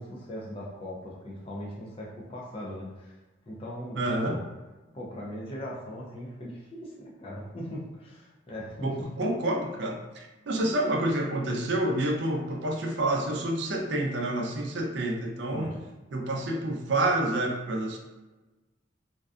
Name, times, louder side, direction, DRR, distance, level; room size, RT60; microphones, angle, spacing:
voice 1, 0.0-3.2 3.5-4.4 4.9-9.1 15.5-15.8, equal, 30° left, -4 dB, 0.4 m, -39 dB
voice 2, 3.9-4.4 8.8-15.7 16.1-18.0, right 1 dB, 60° right, 0 dB, 0.4 m, -28 dB
2.5 x 2.2 x 2.3 m, 1.2 s
head